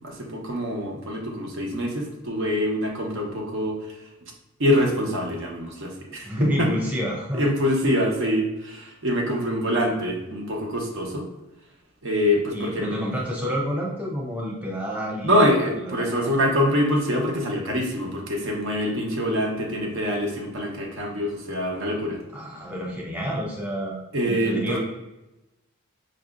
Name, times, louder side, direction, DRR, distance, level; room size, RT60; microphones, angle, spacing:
voice 1, 0.0-3.8 4.6-6.7 7.3-11.3 12.0-13.1 15.2-22.2 24.1-24.8, equal, 65° right, 0 dB, 0.8 m, -25 dB
voice 2, 6.2-7.4 12.5-15.3 15.8-16.4 22.3-24.8, equal, 5° right, -3 dB, 0.4 m, -29 dB
4.8 x 2.7 x 2.3 m, 0.98 s
head